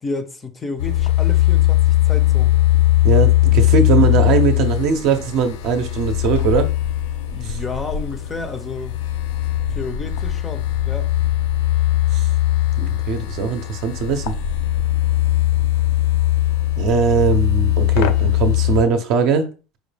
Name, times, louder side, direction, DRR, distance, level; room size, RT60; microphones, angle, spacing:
voice 1, 0.0-2.6 7.3-9.0 9.7-11.1, left 3 dB, 20° left, 0.5 m, -31 dB
sound 1, 0.8-18.8, left 14 dB, 80° left, 0.4 m, -19 dB
voice 2, 3.0-6.7 7.4-7.6 12.1-12.3 12.8-14.3 16.8-19.5, right 6 dB, 60° right, 0.6 m, -20 dB
4.9 x 2.2 x 3.3 m
supercardioid pair, 135°, 0 cm